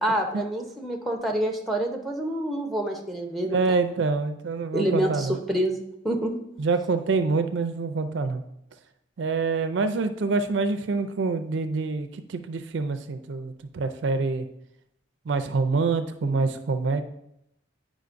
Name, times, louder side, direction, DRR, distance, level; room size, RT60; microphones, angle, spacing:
voice 1, 0.0-3.9 4.7-6.4 16.2-16.4, right 1 dB, ahead, 2 dB, 0.6 m, -27 dB
voice 2, 3.4-5.4 6.6-8.4 9.2-14.5 15.3-17.0, right 4 dB, 65° right, 9 dB, 0.4 m, -26 dB
9.3 x 5.0 x 2.5 m, 0.81 s
head